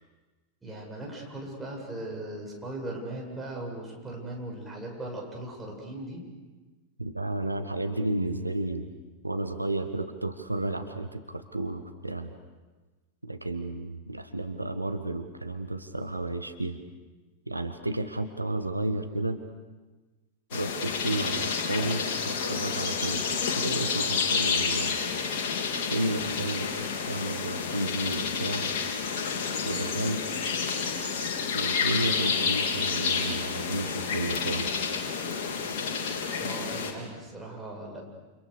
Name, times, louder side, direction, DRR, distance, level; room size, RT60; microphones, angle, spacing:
voice 1, 0.6-6.2 36.4-38.0, right 1 dB, 10° right, -1 dB, 7.8 m, -38 dB
voice 2, 7.0-8.9 9.2-12.3 13.2-16.8 17.5-19.4 20.5-24.9 25.9-28.7 29.6-30.4 31.5-35.0, right 2 dB, 85° right, 8 dB, 1.4 m, -32 dB
sound 1, 20.5-36.9, left 5 dB, 50° left, 3.6 m, -29 dB
30.0 x 28.5 x 6.8 m, 1.2 s
figure-of-eight pair, 90°, 0 cm